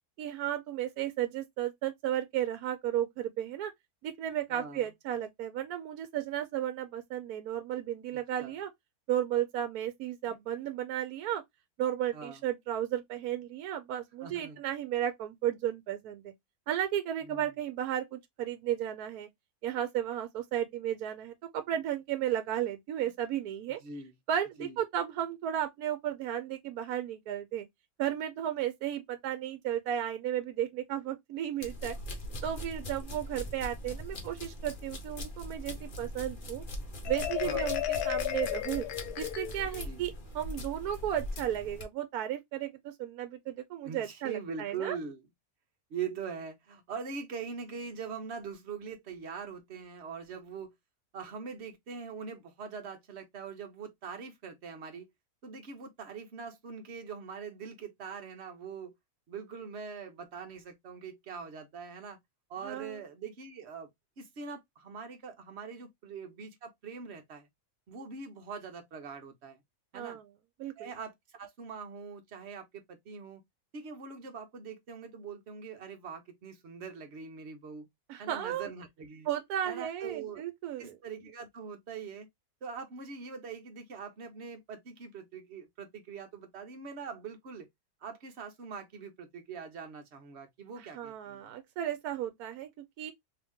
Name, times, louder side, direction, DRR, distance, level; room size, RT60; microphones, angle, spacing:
voice 1, 0.2-3.7 4.0-8.7 9.1-11.4 11.8-16.3 16.7-19.3 19.6-23.8 24.3-27.7 28.0-31.9 32.4-36.6 37.1-38.9 39.2-45.0 62.6-63.0 69.9-70.2 70.6-70.9 78.1-78.7 79.3-81.0 90.9-93.1, right 11 dB, 80° right, 1.1 m, -34 dB
voice 2, 4.5-4.9 8.1-8.6 12.1-12.4 14.2-14.6 17.2-17.5 23.7-24.1 24.6-24.8 37.4-37.7 39.8-40.1 43.8-45.3 45.9-50.7 51.1-55.1 55.4-58.9 59.3-62.2 62.5-63.9 64.2-67.5 67.9-69.6 69.9-70.2 70.8-73.4 73.7-77.9 78.2-79.3 79.6-80.4 80.8-82.3 82.6-87.7 88.0-91.5, right 5 dB, 50° right, 1.0 m, -43 dB
sound 1, 31.6-41.9, equal, 40° left, 0.9 m, -41 dB
Marimba xylophone, 37.1-39.8, left 13 dB, 80° left, 1.1 m, -33 dB
2.9 x 2.8 x 3.5 m
omnidirectional pair, 1.6 m